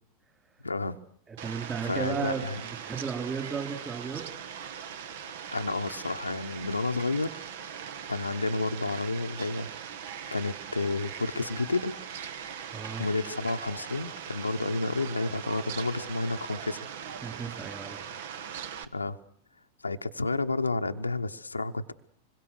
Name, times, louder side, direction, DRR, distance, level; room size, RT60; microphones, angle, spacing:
voice 1, 0.6-1.0 1.8-2.6 5.5-7.4 8.1-9.7 10.3-12.0 13.0-16.8 18.9-19.2 19.8-21.9, left 3 dB, 80° left, 7 dB, 0.9 m, -30 dB
voice 2, 1.3-2.4 2.8-4.2 12.7-13.1 17.2-18.0, right 6 dB, 20° right, 4 dB, 4.9 m, -34 dB
Fowl, 1.4-18.9, right 8 dB, 55° right, 1.3 m, -40 dB
26.0 x 22.0 x 6.5 m, 0.64 s
figure-of-eight pair, 90°, 0 cm